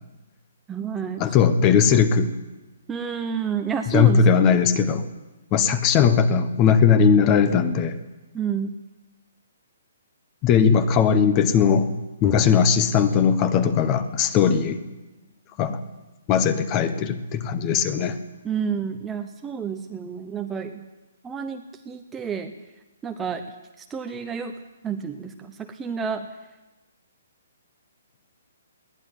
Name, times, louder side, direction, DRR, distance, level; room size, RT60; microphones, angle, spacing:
voice 1, 0.7-1.4 2.9-4.6 8.3-8.8 18.4-20.8 21.2-22.5 23.0-23.4 23.8-24.5 24.8-26.3, right 7 dB, 5° right, 5 dB, 0.8 m, -30 dB
voice 2, 1.2-2.3 3.9-5.0 5.5-7.9 10.4-11.9 12.2-14.8 15.6-15.8 16.3-18.2, left 7 dB, 15° left, 12 dB, 1.1 m, -19 dB
21.5 x 17.0 x 9.8 m, 1.1 s
hypercardioid pair, 175°, 0 cm